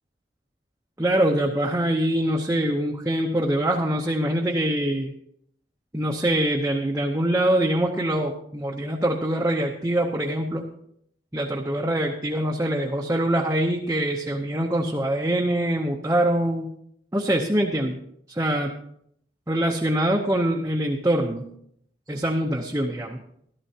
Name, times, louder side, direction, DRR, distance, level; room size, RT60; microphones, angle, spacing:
voice 1, 1.0-5.1 5.9-10.7 11.3-16.7 17.1-18.0 18.3-18.7 19.5-21.5 22.1-23.2, right 1 dB, 15° right, -1 dB, 0.7 m, -24 dB
14.5 x 13.0 x 2.8 m, 0.70 s
head